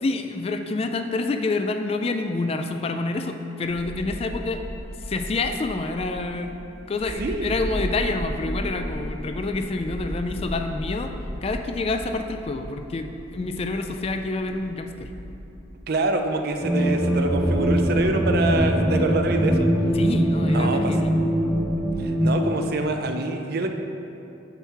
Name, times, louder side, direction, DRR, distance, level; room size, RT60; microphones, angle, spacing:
voice 1, 0.0-6.6 6.9-11.1 11.4-15.1 19.9-21.1, left 3 dB, 30° left, 6 dB, 0.3 m, -28 dB
sound 1, 3.6-22.0, equal, 25° right, 1.0 m, -37 dB
voice 2, 7.2-7.6 15.9-19.7 20.5-20.9 22.0-23.7, right 3 dB, 50° right, 5 dB, 0.5 m, -26 dB
sound 2, 16.6-22.5, equal, ahead, 0.8 m, -22 dB
6.7 x 4.6 x 5.6 m, 2.8 s
head